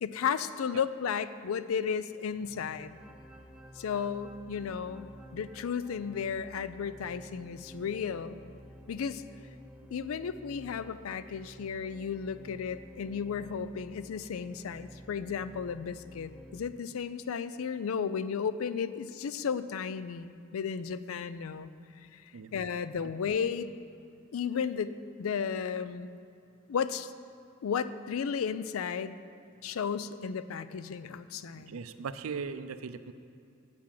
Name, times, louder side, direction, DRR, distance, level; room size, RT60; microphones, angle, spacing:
voice 1, 0.0-3.0 3.8-8.4 8.9-9.2 9.9-21.7 22.1-22.2 22.5-23.7 24.3-26.1 26.7-27.1 27.6-29.2 29.6-31.7, left 6 dB, 75° left, 14 dB, 0.4 m, -34 dB
sound 1, 2.2-16.6, equal, 5° right, 0.4 m, -51 dB
voice 2, 31.6-33.1, right 5 dB, 75° right, 11 dB, 0.4 m, -38 dB
8.6 x 6.0 x 7.4 m, 2.5 s
head